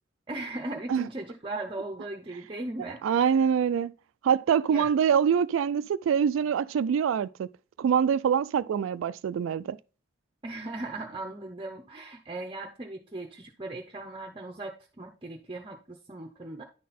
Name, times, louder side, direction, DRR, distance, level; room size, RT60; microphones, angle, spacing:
voice 1, 0.3-3.5 4.7-4.9 10.4-16.6, right 2 dB, 25° right, 0.7 m, -38 dB
voice 2, 3.0-3.9 4.2-7.5 7.8-9.8, right 7 dB, 90° right, 0.3 m, -24 dB
10.0 x 4.2 x 4.1 m
head